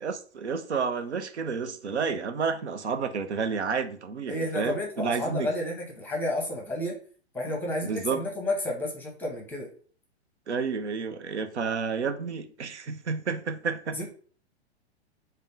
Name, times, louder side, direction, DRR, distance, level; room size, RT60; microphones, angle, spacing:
voice 1, 0.0-5.5 7.8-8.2 10.5-14.1, right 5 dB, 85° right, 0.5 m, -30 dB
voice 2, 4.3-7.0 7.3-9.7 13.9-14.1, left 1 dB, 5° left, 0.8 m, -31 dB
3.4 x 2.1 x 3.8 m
figure-of-eight pair, 110°, 33 cm